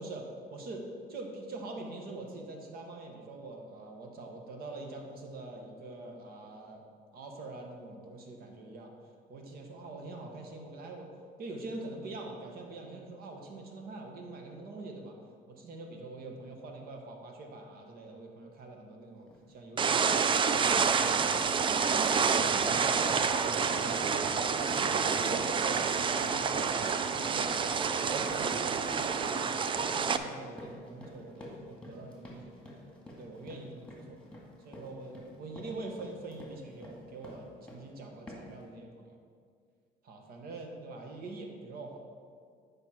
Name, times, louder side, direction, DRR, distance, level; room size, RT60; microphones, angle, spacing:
voice 1, 0.0-6.8 7.1-8.9 9.3-11.1 11.4-15.2 15.5-21.4 21.7-26.4 26.7-29.4 29.9-32.5 33.2-34.2 34.6-39.2 40.0-42.0, right 2 dB, 65° right, 2 dB, 1.2 m, -44 dB
sound 1, 19.3-19.5 19.9-20.3 20.6-37.9 38.3-38.6, left 1 dB, 5° left, 1.9 m, -49 dB
sound 2, 19.8-30.2, right 6 dB, 30° right, 0.4 m, -28 dB
sound 3, 20.5-29.3, right 8 dB, 90° right, 0.5 m, -41 dB
8.2 x 5.3 x 4.3 m, 2.1 s
cardioid pair, 110°, 17 cm